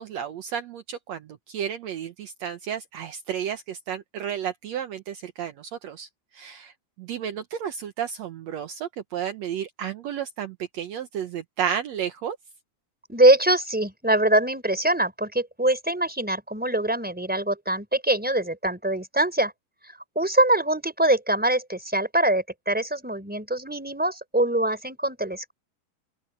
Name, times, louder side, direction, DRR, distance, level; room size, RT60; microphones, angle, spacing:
voice 1, 0.0-6.1 6.3-6.7 7.0-12.4, right 9 dB, 75° right, 1.5 m, -32 dB
voice 2, 13.1-19.5 20.1-25.5, right 1 dB, ahead, 4.3 m, -23 dB
open air
omnidirectional pair, 4.6 m